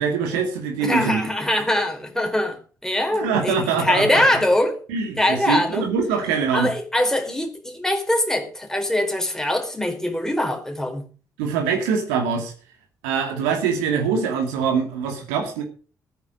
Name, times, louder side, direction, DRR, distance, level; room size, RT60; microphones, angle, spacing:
voice 1, 0.0-1.2 3.1-4.2 4.9-6.7 11.4-12.5 13.0-15.6, right 6 dB, 70° right, 4 dB, 2.4 m, -23 dB
voice 2, 0.8-4.8 5.2-5.9 6.5-11.0, left 1 dB, 5° left, 4 dB, 4.2 m, -22 dB
16.5 x 9.7 x 5.2 m, 0.38 s
figure-of-eight pair, 40°, 9 cm